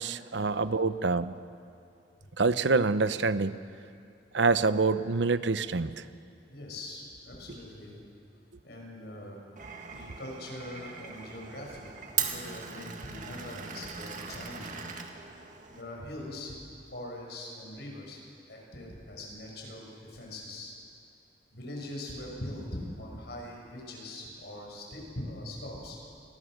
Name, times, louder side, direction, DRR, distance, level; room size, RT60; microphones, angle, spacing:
voice 1, 0.0-1.4 2.4-3.6 4.3-6.0, right 4 dB, 80° right, 13 dB, 0.8 m, -26 dB
voice 2, 6.5-8.0 8.6-9.5 9.9-14.8 15.7-16.6 16.9-18.2 18.5-20.7 21.5-26.0, left 1 dB, 60° left, -1 dB, 6.8 m, -42 dB
Glass, 9.6-15.8, right 7 dB, 45° right, 2.0 m, -39 dB
28.5 x 21.5 x 6.6 m, 2.5 s
head